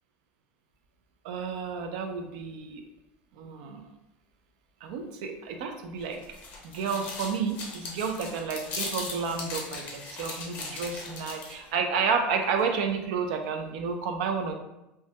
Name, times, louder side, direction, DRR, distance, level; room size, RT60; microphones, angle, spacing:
voice 1, 1.2-2.8 3.4-3.9 4.8-6.2 6.6-14.5, right 5 dB, 75° right, 5 dB, 0.4 m, -31 dB
sound 1, 6.0-11.7, left 3 dB, 35° left, 0.5 m, -38 dB
2.2 x 2.1 x 2.7 m, 0.92 s
cardioid pair, 160°, 4 cm